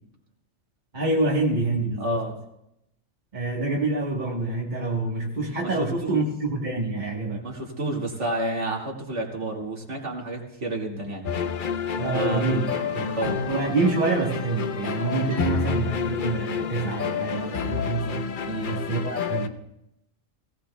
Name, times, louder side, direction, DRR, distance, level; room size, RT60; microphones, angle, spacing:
voice 1, 0.9-2.2 3.3-7.5 12.0-12.7 12.9-13.2 13.5-18.3 18.7-19.6, right 3 dB, 35° right, -2 dB, 1.2 m, -26 dB
voice 2, 2.0-2.4 5.6-6.2 7.4-11.3 12.1-12.6 13.2-13.4 18.4-18.7, right 1 dB, 60° right, -2 dB, 2.3 m, -30 dB
sound 1, 11.2-19.5, left 6 dB, 50° left, 0.7 m, -29 dB
sound 2, 12.7-17.9, right 1 dB, 80° right, 1.9 m, -41 dB
18.5 x 17.0 x 2.2 m, 0.82 s
omnidirectional pair, 1.4 m